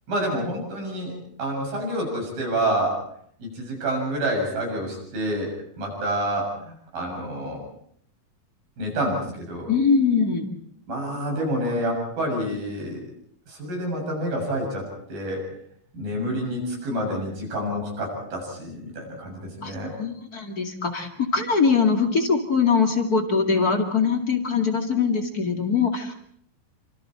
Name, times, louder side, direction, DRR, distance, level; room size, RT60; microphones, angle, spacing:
voice 1, 0.1-1.1 1.4-3.0 3.4-7.6 8.8-9.7 10.9-13.0 13.5-15.5 15.9-19.9, right 1 dB, 85° right, 1 dB, 8.8 m, -28 dB
voice 2, 9.7-10.5 19.6-19.7 20.0-26.1, left 5 dB, 30° left, 4 dB, 2.2 m, -22 dB
29.0 x 26.0 x 4.4 m, 0.65 s
omnidirectional pair, 4.0 m